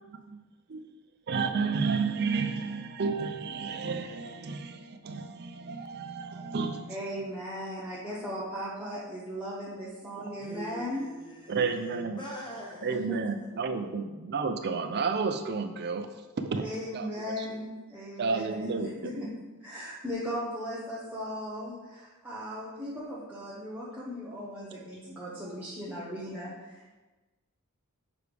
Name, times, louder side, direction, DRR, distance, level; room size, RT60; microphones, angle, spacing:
voice 1, 0.1-0.4 0.7-0.8 1.3-7.0 11.5-12.2 12.8-16.1 16.4-16.6 16.9-17.1 17.4-17.5 18.2-19.1, right 4 dB, 50° right, 7 dB, 0.5 m, -31 dB
voice 2, 6.9-11.1 13.1-13.2 16.6-18.4 18.7-19.3 19.6-26.9, equal, 5° right, -9 dB, 0.9 m, -37 dB
voice 3, 10.4-13.1, left 1 dB, 20° left, -3 dB, 0.9 m, -43 dB
6.9 x 4.7 x 3.4 m, 1.2 s
head